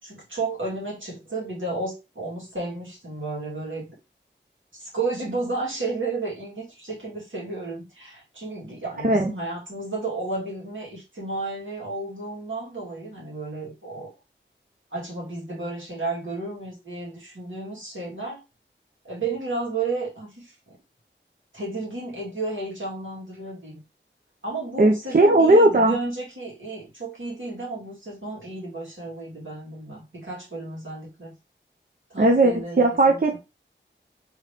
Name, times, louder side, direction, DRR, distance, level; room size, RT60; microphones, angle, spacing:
voice 1, 0.0-3.9 4.7-14.1 14.9-18.4 19.0-20.8 21.5-23.8 24.4-31.3 32.1-33.4, right 3 dB, 75° right, 2.2 m, -32 dB
voice 2, 24.8-26.0 32.2-33.4, right 2 dB, 45° right, 0.6 m, -17 dB
3.6 x 3.0 x 3.3 m
wide cardioid pair, 45°, 20 cm